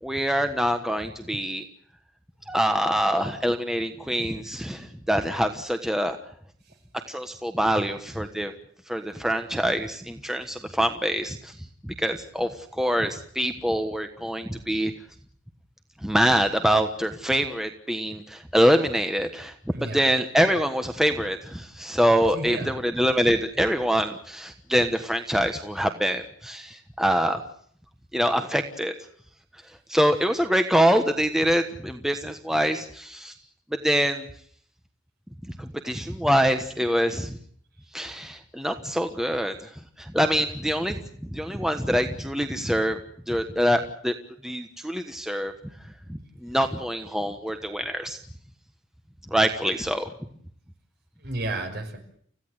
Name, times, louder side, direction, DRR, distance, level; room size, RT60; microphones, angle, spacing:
voice 1, 0.0-1.6 2.5-6.2 7.1-8.5 8.9-11.5 12.0-14.9 16.0-19.5 19.9-27.4 28.1-28.9 29.9-33.3 33.8-34.3 35.6-37.4 37.9-39.5 40.0-41.0 41.3-43.0 43.3-44.1 44.4-45.5 46.1-48.2 49.3-50.1, equal, ahead, 6 dB, 1.2 m, -25 dB
voice 2, 19.7-20.1 22.3-22.8 51.2-52.0, right 2 dB, 55° right, 6 dB, 5.9 m, -32 dB
30.0 x 16.0 x 8.1 m, 0.62 s
head